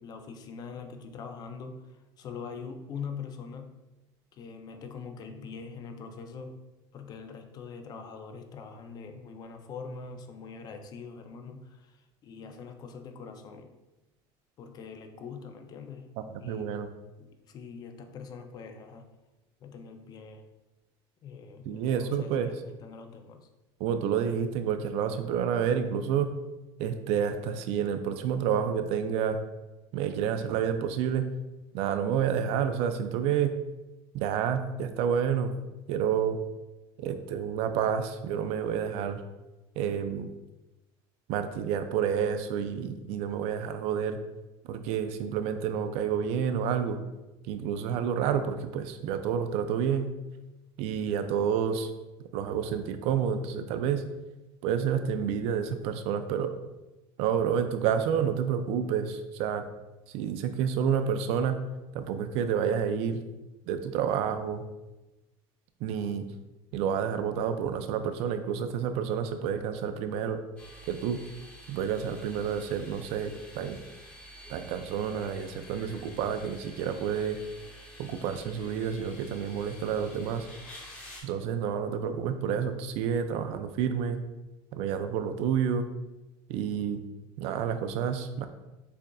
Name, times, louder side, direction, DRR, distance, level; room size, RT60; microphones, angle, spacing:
voice 1, 0.0-1.8 2.2-3.7 4.3-6.6 6.9-13.7 14.6-16.1 16.4-16.8 17.2-19.1 19.6-20.4 21.2-23.5, left 5 dB, 35° left, 6 dB, 0.4 m, -43 dB
voice 2, 16.4-16.9 21.7-22.5 23.8-26.3 26.8-29.4 29.9-31.3 31.7-33.6 34.1-35.5 35.9-36.4 37.0-39.2 39.8-40.3 41.3-44.2 44.7-47.0 47.5-50.1 50.8-51.9 52.3-54.0 54.6-56.5 57.2-59.6 60.1-61.6 61.9-63.2 63.7-64.6 65.8-66.3 66.7-70.4 70.9-71.2 71.7-73.8 74.5-77.4 78.0-80.5 81.2-84.2 84.7-85.9 86.5-87.0 87.4-88.5, right 8 dB, 65° right, 9 dB, 0.4 m, -29 dB
sound 1, 70.6-81.2, equal, 10° left, 0.9 m, -49 dB
6.6 x 2.5 x 2.3 m, 1.0 s
cardioid pair, 145°, 11 cm